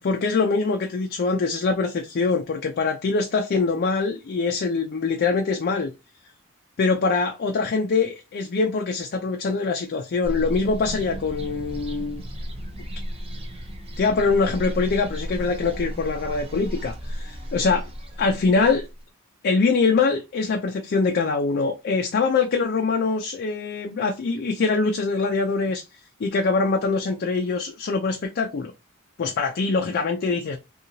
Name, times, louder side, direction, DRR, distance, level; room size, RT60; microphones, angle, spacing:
voice 1, 0.0-5.9 6.8-12.2 14.0-17.9 18.2-18.9 19.4-25.8 26.2-28.7 29.2-30.6, left 4 dB, 50° left, 0.4 m, -23 dB
sound 1, 10.2-19.0, equal, 30° right, 0.5 m, -34 dB
2.8 x 2.3 x 2.5 m
head